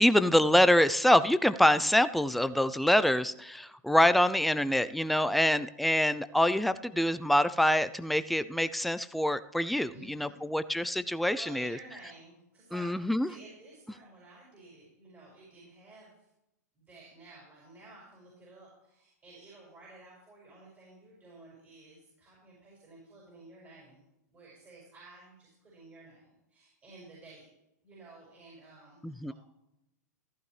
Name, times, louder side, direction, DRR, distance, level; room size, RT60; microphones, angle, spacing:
voice 1, 0.0-11.8 12.7-13.3 29.0-29.3, left 1 dB, ahead, 13 dB, 0.4 m, -25 dB
voice 2, 9.9-10.5 11.3-16.1 16.7-24.0 24.3-27.5 27.8-29.3, right 2 dB, 20° right, -5 dB, 5.5 m, -53 dB
14.5 x 11.5 x 3.3 m, 0.87 s
hypercardioid pair, 120°, 9 cm